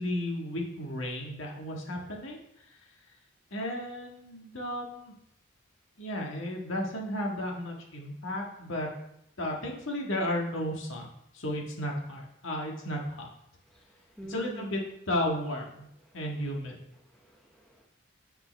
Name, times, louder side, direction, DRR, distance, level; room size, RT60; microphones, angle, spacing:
voice 1, 0.0-2.4 3.5-5.1 6.0-8.9 9.4-11.1 11.3-13.3 14.3-14.8 15.1-15.9 16.1-16.8, left 1 dB, 65° left, 0 dB, 1.7 m, -33 dB
voice 2, 13.7-14.7 16.1-16.2 17.1-17.9, right 1 dB, ahead, -1 dB, 0.7 m, -46 dB
10.0 x 5.7 x 3.4 m, 0.79 s
head